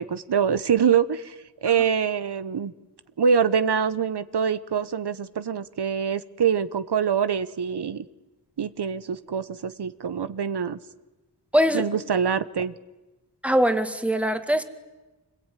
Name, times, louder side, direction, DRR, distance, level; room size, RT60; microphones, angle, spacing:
voice 1, 0.0-1.3 1.6-2.7 3.2-8.0 8.6-10.8 11.7-12.7, right 7 dB, 70° right, 14 dB, 1.0 m, -24 dB
voice 2, 11.5-11.9 13.4-14.6, equal, 5° right, 8 dB, 2.1 m, -22 dB
25.5 x 21.5 x 9.2 m, 1.1 s
cardioid pair, 55°, 41 cm